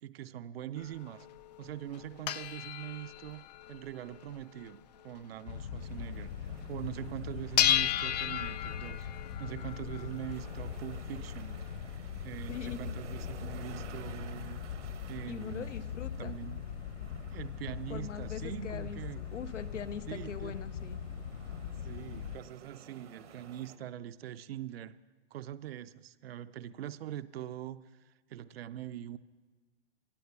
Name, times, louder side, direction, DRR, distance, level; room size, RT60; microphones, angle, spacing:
voice 1, 0.0-1.3 1.6-9.1 9.4-11.6 12.2-14.6 15.1-15.7 16.2-16.6 17.3-19.2 20.1-20.6 21.8-25.0 25.3-29.2, right 12 dB, 55° right, 14 dB, 0.6 m, -43 dB
sound 1, 0.8-6.3 6.6-6.7 7.0-11.9, left 11 dB, 40° left, 0.4 m, -35 dB
sound 2, 5.5-22.4, left 8 dB, 60° left, 0.9 m, -41 dB
sound 3, 5.8-23.8, right 7 dB, 75° right, 1.2 m, -54 dB
voice 2, 12.5-12.8 15.3-16.4 17.9-21.0, left 7 dB, 90° left, 12 dB, 0.9 m, -42 dB
16.0 x 7.8 x 6.9 m, 1.3 s
hypercardioid pair, 135°, 36 cm